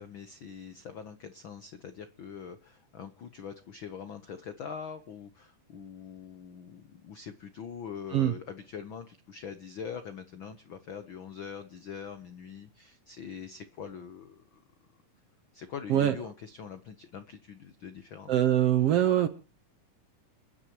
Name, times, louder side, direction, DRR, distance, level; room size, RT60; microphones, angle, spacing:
voice 1, 0.0-14.6 15.5-18.3, left 7 dB, 70° left, 10 dB, 1.1 m, -43 dB
voice 2, 18.3-19.3, right 11 dB, 65° right, 11 dB, 1.6 m, -23 dB
29.0 x 10.0 x 3.0 m, 0.33 s
omnidirectional pair, 3.8 m